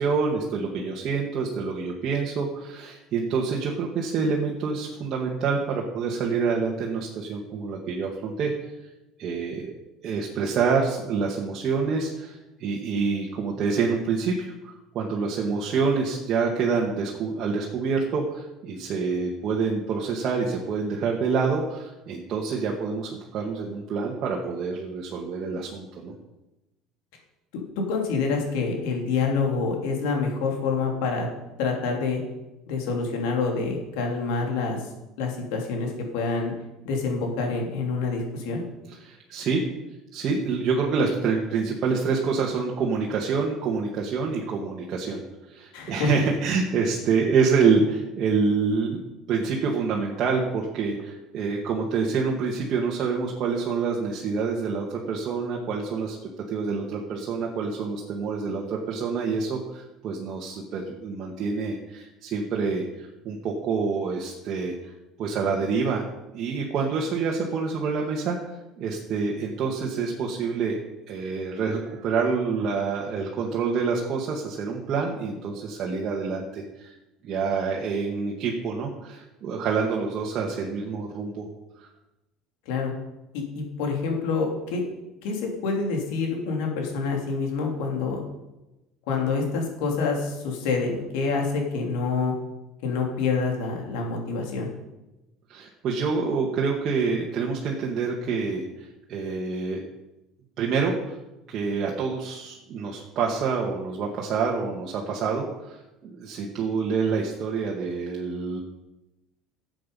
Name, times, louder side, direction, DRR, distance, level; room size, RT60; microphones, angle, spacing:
voice 1, 0.0-8.5 9.2-9.7 10.0-26.1 39.0-39.6 40.1-49.0 49.3-56.2 56.5-64.7 65.2-66.0 66.3-70.8 71.1-76.9 77.2-81.5 81.8-81.9 95.5-99.8 100.6-101.0 101.5-108.6, right 5 dB, 45° right, -2 dB, 1.9 m, -27 dB
voice 2, 27.9-31.3 31.6-32.2 32.7-34.8 35.2-36.5 36.8-38.6 45.7-46.1 82.6-82.9 83.3-84.8 85.2-88.2 89.1-92.3 92.8-94.7, left 4 dB, 85° left, 1 dB, 3.2 m, -27 dB
13.0 x 8.0 x 5.4 m, 0.98 s
cardioid pair, 120°, 0 cm